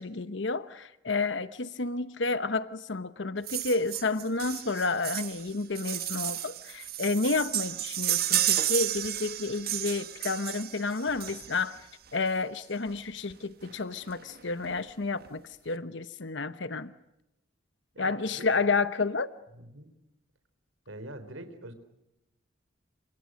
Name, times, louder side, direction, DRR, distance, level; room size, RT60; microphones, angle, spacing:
voice 1, 0.0-11.9 12.1-16.9 18.0-19.3, left 3 dB, 70° left, 1.0 m, -30 dB
sound 1, 3.5-11.8 12.9-13.0 13.3-13.4 13.6-13.8 14.1-14.7 15.2-15.3, right 12 dB, 50° right, 1.6 m, -32 dB
voice 2, 17.9-18.6 19.5-19.9 20.9-21.7, right 1 dB, 90° right, 4.1 m, -44 dB
28.5 x 27.0 x 6.4 m
head